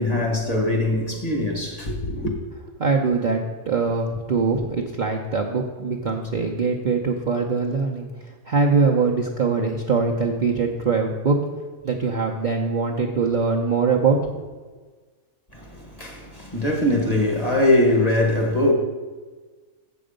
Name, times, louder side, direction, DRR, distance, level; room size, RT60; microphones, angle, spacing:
voice 1, 0.0-2.3 15.5-18.7, left 1 dB, 30° left, 1.2 m, -22 dB
voice 2, 2.8-11.4 11.8-14.5, right 4 dB, 45° right, 0.7 m, -22 dB
7.7 x 7.0 x 5.1 m
omnidirectional pair, 1.5 m